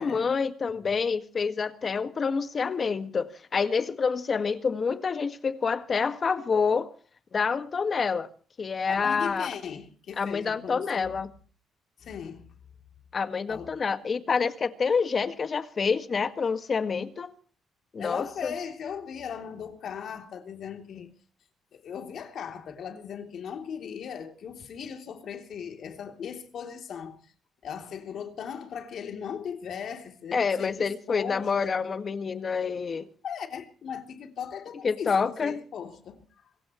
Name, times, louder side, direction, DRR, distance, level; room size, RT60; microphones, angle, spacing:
voice 1, 0.0-6.9 7.3-8.3 8.6-9.5 10.2-11.3 13.1-17.3 17.9-18.5 30.3-33.1 34.8-35.6, left 5 dB, 40° left, 1.8 m, -27 dB
voice 2, 8.9-11.2 12.0-12.5 13.5-13.7 18.0-21.1 21.7-27.3 27.6-31.8 33.2-36.5, left 7 dB, 65° left, 3.2 m, -38 dB
26.0 x 16.0 x 3.2 m
cardioid pair, 90°, 0 cm